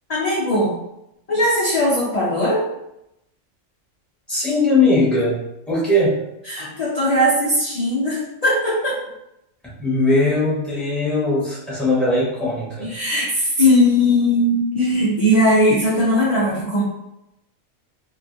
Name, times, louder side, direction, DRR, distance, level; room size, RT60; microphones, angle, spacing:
voice 1, 0.1-0.7 1.3-2.7 6.5-9.0 12.8-16.8, left 1 dB, 45° left, -7 dB, 0.5 m, -19 dB
voice 2, 4.3-5.4 5.7-6.2 9.6-12.9, left 2 dB, ahead, -9 dB, 1.0 m, -19 dB
2.9 x 2.5 x 2.5 m, 0.85 s
omnidirectional pair, 1.4 m